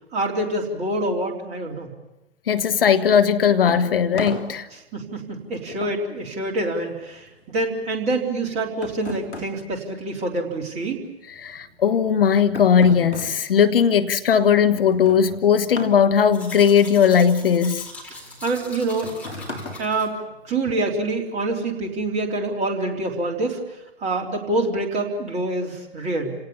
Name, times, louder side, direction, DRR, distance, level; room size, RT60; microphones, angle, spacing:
voice 1, 0.1-1.9 4.7-11.0 18.1-19.1 19.8-20.1 20.4-26.3, right 2 dB, 20° right, 3.6 m, -26 dB
voice 2, 2.5-4.7 11.4-17.9, left 7 dB, 55° left, 1.2 m, -18 dB
sound 1, 3.6-10.8 11.1-20.8, left 1 dB, 85° left, 3.4 m, -39 dB
Domestic sounds home sounds, 16.3-20.1, left 2 dB, 5° left, 4.3 m, -41 dB
28.5 x 18.0 x 7.2 m
figure-of-eight pair, 115°, 33 cm